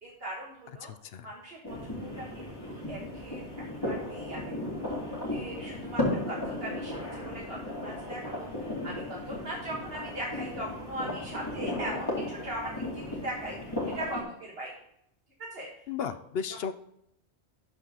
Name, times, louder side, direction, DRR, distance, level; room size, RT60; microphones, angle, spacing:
voice 1, 0.0-0.9 1.2-3.4 3.7-4.9 5.3-14.7 15.5-15.7, right 1 dB, 60° right, -3 dB, 1.7 m, -40 dB
voice 2, 0.8-1.3 15.9-16.7, left 7 dB, 65° left, 12 dB, 0.8 m, -34 dB
sound 1, 1.6-14.2, left 1 dB, 20° left, 2.5 m, -35 dB
12.0 x 4.5 x 3.9 m, 0.77 s
omnidirectional pair, 1.1 m